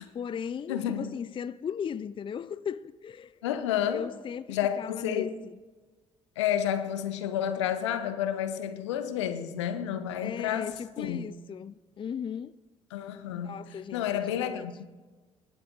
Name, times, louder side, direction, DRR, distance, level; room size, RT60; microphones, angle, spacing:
voice 1, 0.0-3.4 3.9-5.6 10.2-12.5 13.4-14.7, left 7 dB, 35° left, 0.5 m, -37 dB
voice 2, 0.7-1.2 3.4-4.1 4.5-5.3 6.4-11.3 12.9-14.9, left 9 dB, 85° left, 0.9 m, -30 dB
20.5 x 8.7 x 3.8 m
hypercardioid pair, 50°, 15 cm